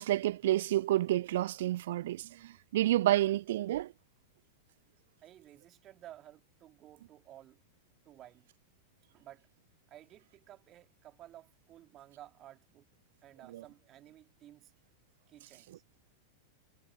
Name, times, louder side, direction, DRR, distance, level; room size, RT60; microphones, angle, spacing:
voice 1, 0.0-3.9 13.5-13.6, right 14 dB, 55° right, 0.3 m, -29 dB
voice 2, 5.2-7.6 8.1-8.5 9.1-9.5 9.9-12.9 13.2-14.7 15.3-15.8, right 13 dB, 30° right, 3.4 m, -54 dB
figure-of-eight pair, 90°, 0 cm